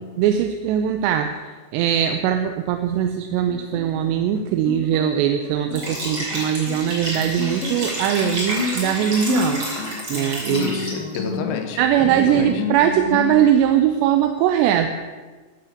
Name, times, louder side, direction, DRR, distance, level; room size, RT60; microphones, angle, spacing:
voice 1, 0.2-1.3 1.7-9.7 10.1-10.7 11.8-15.0, right 10 dB, 85° right, 7 dB, 2.9 m, -20 dB
Guitar, 3.5-13.5, left 5 dB, 60° left, 2.0 m, -31 dB
Liquid, 5.7-11.2, right 1 dB, 25° right, 4.4 m, -30 dB
voice 2, 10.5-12.6, left 5 dB, 90° left, 6 dB, 3.7 m, -30 dB
13.0 x 11.5 x 7.2 m, 1.4 s
omnidirectional pair, 5.0 m